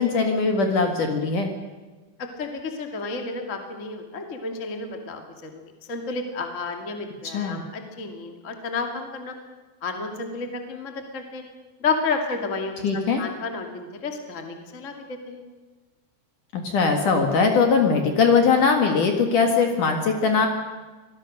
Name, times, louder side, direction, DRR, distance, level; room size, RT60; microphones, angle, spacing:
voice 1, 0.0-1.5 7.3-7.6 12.8-13.2 16.5-20.5, left 5 dB, 55° left, 4 dB, 2.6 m, -20 dB
voice 2, 2.2-5.6 5.9-9.3 9.8-11.4 11.8-12.7 13.2-15.4, left 4 dB, 30° left, 4 dB, 1.5 m, -31 dB
25.0 x 19.0 x 6.6 m, 1.3 s
omnidirectional pair, 5.5 m